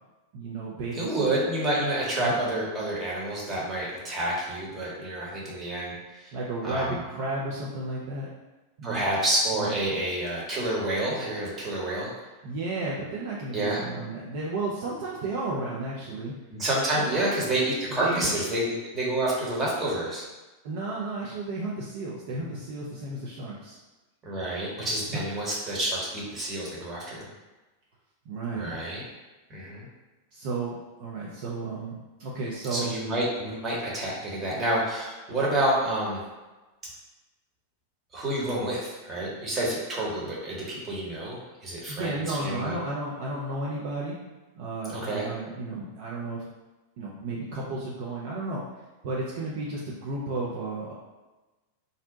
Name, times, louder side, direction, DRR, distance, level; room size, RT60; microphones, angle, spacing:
voice 1, 0.3-1.3 2.2-2.4 6.3-8.3 8.8-9.0 9.5-10.0 12.4-16.4 16.9-17.3 18.0-18.3 20.6-23.8 25.1-25.2 28.3-28.8 30.3-33.0 41.9-44.2 44.5-46.4 47.0-48.6 49.0-50.9, right 2 dB, 50° right, -5 dB, 0.5 m, -33 dB
voice 2, 0.9-6.0 6.6-7.0 8.8-12.1 13.5-13.8 16.5-20.2 24.2-27.3 28.5-29.0 29.5-29.9 32.7-36.2 38.1-42.8 44.9-45.3, right 1 dB, 20° right, -5 dB, 1.0 m, -28 dB
2.6 x 2.1 x 3.9 m, 1.1 s
figure-of-eight pair, 90°, 0 cm